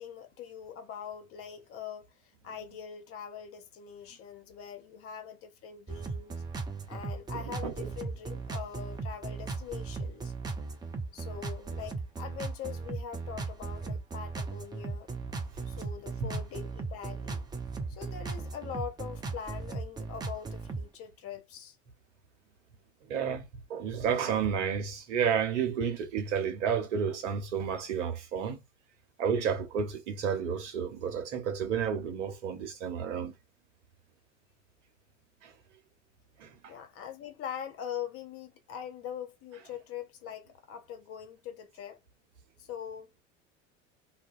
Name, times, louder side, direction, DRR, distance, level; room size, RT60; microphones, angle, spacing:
voice 1, 0.0-6.4 6.9-10.3 11.1-15.1 15.7-17.5 17.9-21.8 36.7-42.0 42.6-43.1, left 8 dB, 35° left, 0.8 m, -42 dB
sound 1, 5.9-20.9, right 4 dB, 10° right, 0.4 m, -37 dB
voice 2, 7.3-7.9 16.2-16.3 23.1-28.6 29.2-33.3 35.4-35.5 36.4-36.7, right 7 dB, 65° right, 1.0 m, -31 dB
2.5 x 2.1 x 2.6 m
figure-of-eight pair, 75°, 38 cm